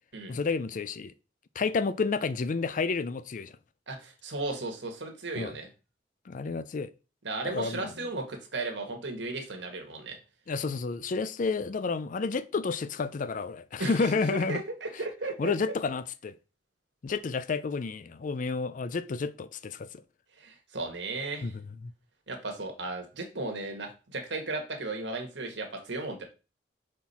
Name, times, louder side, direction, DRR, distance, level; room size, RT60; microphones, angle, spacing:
voice 1, 0.3-1.1 1.6-3.5 5.4-5.5 6.3-6.9 7.4-7.9 10.5-14.6 15.4-16.4 17.0-19.9 21.4-21.9, left 4 dB, 45° left, 0.4 m, -30 dB
voice 2, 3.9-5.7 7.2-10.2 13.8-15.5 20.4-21.5 22.3-26.2, right 2 dB, 75° right, 1.5 m, -35 dB
6.0 x 4.3 x 4.2 m
head